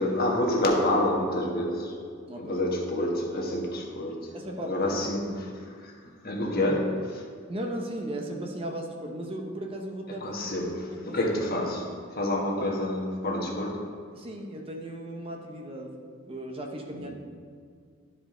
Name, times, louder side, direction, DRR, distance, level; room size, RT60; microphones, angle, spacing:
voice 1, 0.0-2.0 2.4-7.3 10.1-14.0 16.9-17.1, left 1 dB, 45° left, -1 dB, 1.3 m, -28 dB
voice 2, 2.3-2.6 3.6-3.7 4.3-5.0 7.5-10.3 10.9-11.2 12.6-12.7 14.1-15.9 16.3-17.2, right 1 dB, 25° right, 2 dB, 0.7 m, -36 dB
12.0 x 4.8 x 3.8 m, 2.1 s
head